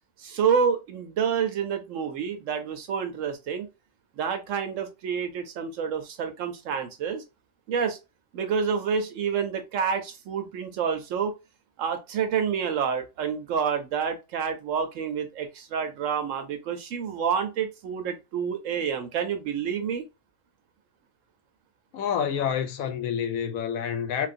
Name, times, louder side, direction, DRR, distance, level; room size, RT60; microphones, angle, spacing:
voice 1, 0.2-3.7 4.2-7.2 7.7-8.0 8.3-11.3 11.8-20.0, right 7 dB, 70° right, 0.9 m, -28 dB
voice 2, 21.9-24.3, left 8 dB, 75° left, 1.0 m, -28 dB
3.1 x 2.4 x 2.5 m
omnidirectional pair, 1.5 m